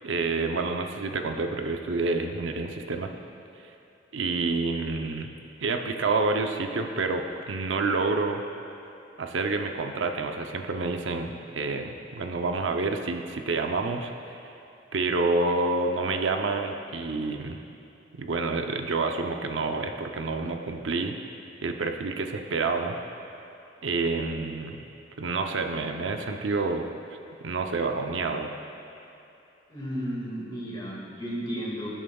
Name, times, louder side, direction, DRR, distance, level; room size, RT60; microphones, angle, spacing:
voice 1, 0.0-3.1 4.1-5.3 5.6-8.4 9.2-14.1 14.9-17.6 18.1-21.2 21.6-23.0 23.8-24.8 25.2-26.9 27.4-28.5, right 3 dB, 90° right, 4 dB, 0.6 m, -28 dB
voice 2, 29.7-31.9, equal, 25° left, -5 dB, 2.0 m, -33 dB
18.0 x 7.3 x 2.3 m, 2.7 s
head